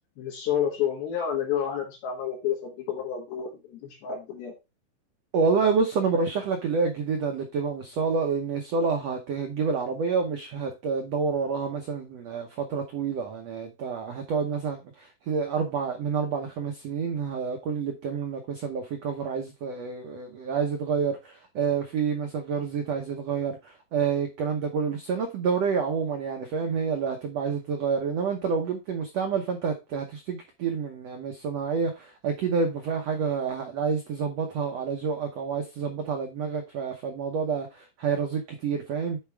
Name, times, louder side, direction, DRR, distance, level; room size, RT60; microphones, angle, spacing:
voice 1, 0.2-4.5, left 9 dB, 80° left, 3.5 m, -30 dB
voice 2, 5.3-39.2, right 5 dB, 85° right, 1.4 m, -28 dB
9.3 x 4.7 x 3.4 m
omnidirectional pair, 4.3 m